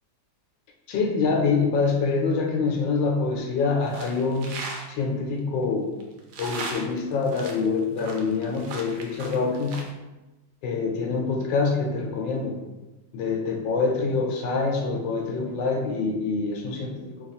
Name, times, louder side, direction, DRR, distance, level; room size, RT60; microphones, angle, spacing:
voice 1, 0.9-4.5 4.9-5.9 6.4-9.8 10.6-12.6 13.1-17.1, left 4 dB, 80° left, 1 dB, 1.4 m, -25 dB
sound 1, 3.8-4.9 6.0-9.9, right 3 dB, 90° right, 1.3 m, -37 dB
3.3 x 2.4 x 4.1 m, 1.1 s
omnidirectional pair, 2.0 m